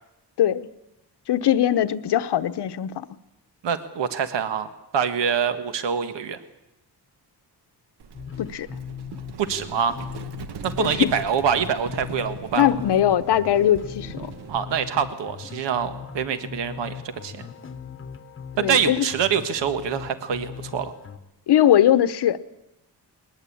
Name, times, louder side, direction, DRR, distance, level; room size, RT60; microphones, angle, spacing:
voice 1, 1.3-3.0 8.4-8.7 10.8-11.1 12.6-14.3 18.6-19.0 21.5-22.4, left 11 dB, 70° left, 1.0 m, -20 dB
voice 2, 3.6-6.4 9.4-10.0 10.6-12.7 14.5-17.5 18.6-20.9, right 7 dB, 85° right, 1.6 m, -25 dB
Livestock farm animals working animals, 8.0-14.7, right 6 dB, 65° right, 1.3 m, -40 dB
sound 1, 8.1-21.2, left 7 dB, 30° left, 1.0 m, -39 dB
21.0 x 20.5 x 8.6 m
wide cardioid pair, 160°, 42 cm